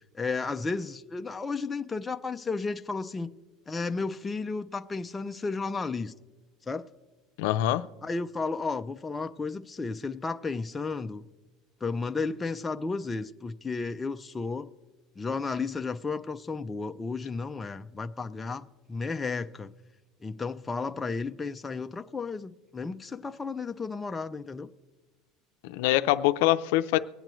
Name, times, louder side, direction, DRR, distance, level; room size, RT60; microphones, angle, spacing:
voice 1, 0.1-3.3 3.7-6.1 6.7-6.8 8.0-11.3 11.8-14.7 15.2-19.7 20.2-24.7, left 4 dB, 15° left, 0.4 m, -33 dB
voice 2, 7.4-7.8 25.7-27.0, left 15 dB, 80° left, 0.4 m, -24 dB
24.0 x 9.0 x 3.1 m
cardioid pair, 150°, 0 cm